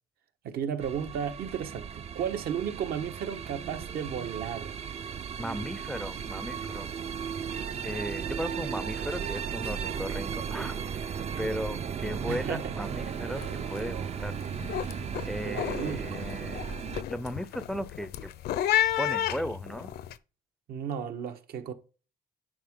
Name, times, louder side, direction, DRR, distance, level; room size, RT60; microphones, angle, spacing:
voice 1, 0.4-4.8 12.3-12.7 13.8-13.9 15.4-16.2 20.7-21.7, right 8 dB, 65° right, 1.4 m, -34 dB
sound 1, 0.8-17.0, right 7 dB, 40° right, 0.6 m, -36 dB
voice 2, 5.4-6.9 7.8-13.4 13.7-14.3 15.3-16.7 17.1-18.3 19.0-19.9, equal, ahead, 0.5 m, -36 dB
sound 2, 12.8-13.1 13.3-13.8 14.2-20.1, left 12 dB, 70° left, 0.7 m, -32 dB
10.5 x 5.2 x 3.8 m
cardioid pair, 110°, 17 cm